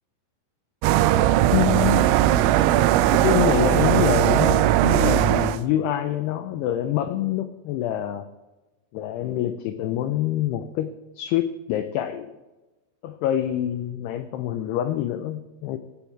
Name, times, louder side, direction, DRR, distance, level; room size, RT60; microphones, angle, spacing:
sound 1, 0.8-5.6, right 13 dB, 85° right, 2.9 m, -19 dB
voice 1, 1.5-2.1 3.2-8.3 8.9-10.9 11.2-12.3 13.0-15.8, left 12 dB, 85° left, 9 dB, 2.3 m, -26 dB
17.5 x 8.6 x 4.6 m, 1.1 s
omnidirectional pair, 5.4 m